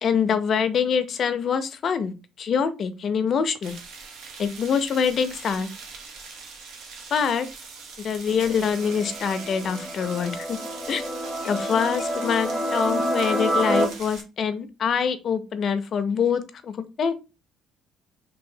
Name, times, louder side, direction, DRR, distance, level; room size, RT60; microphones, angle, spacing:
voice 1, 0.0-2.1 2.4-3.7 4.4-5.7 7.1-7.5 8.0-10.6 10.9-11.0 11.4-17.1, left 7 dB, 50° left, 11 dB, 0.5 m, -25 dB
sound 1, 3.6-14.2, right 5 dB, 70° right, 0.7 m, -42 dB
sound 2, 8.3-13.8, equal, 10° left, 0.8 m, -28 dB
2.8 x 2.7 x 2.6 m, 0.29 s
cardioid pair, 90°, 0 cm